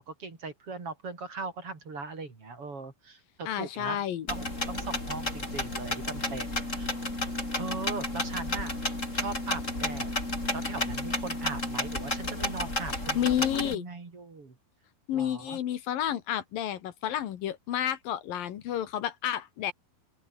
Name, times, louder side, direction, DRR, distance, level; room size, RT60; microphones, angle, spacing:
voice 1, 0.0-7.0 7.6-8.8 9.1-10.1 10.5-14.6 15.1-15.6, right 4 dB, 35° right, 4.7 m, -39 dB
voice 2, 3.5-4.3 13.2-13.9 15.1-19.7, left 11 dB, 65° left, 3.0 m, -30 dB
sound 1, 4.3-13.7, left 1 dB, 15° left, 7.7 m, -32 dB
open air
omnidirectional pair, 4.9 m